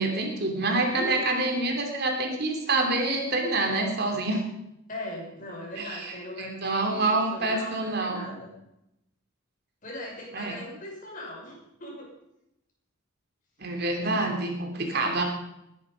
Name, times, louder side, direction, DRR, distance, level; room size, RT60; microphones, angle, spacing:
voice 1, 0.0-4.4 5.8-8.2 10.3-10.5 13.6-15.2, right 2 dB, 50° right, 3 dB, 3.0 m, -27 dB
voice 2, 0.9-1.3 4.9-8.5 9.8-12.1, left 1 dB, 40° left, -1 dB, 5.8 m, -39 dB
21.0 x 11.0 x 5.2 m, 0.84 s
head